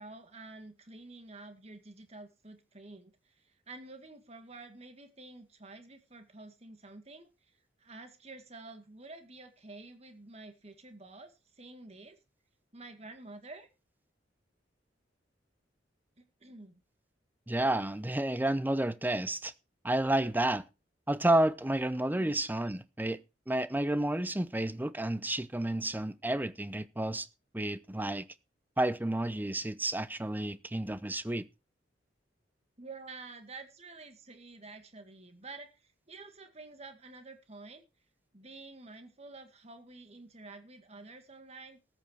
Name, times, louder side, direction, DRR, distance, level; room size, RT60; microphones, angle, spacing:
voice 1, 0.0-12.2 12.7-13.7 16.2-16.8 32.8-37.9 38.3-41.8, right 3 dB, 35° right, 2.0 m, -49 dB
voice 2, 17.5-19.5 19.8-20.6 21.1-23.2 23.5-27.3 27.5-28.3 28.8-31.5, right 1 dB, 10° right, 0.6 m, -30 dB
14.0 x 9.0 x 4.6 m
head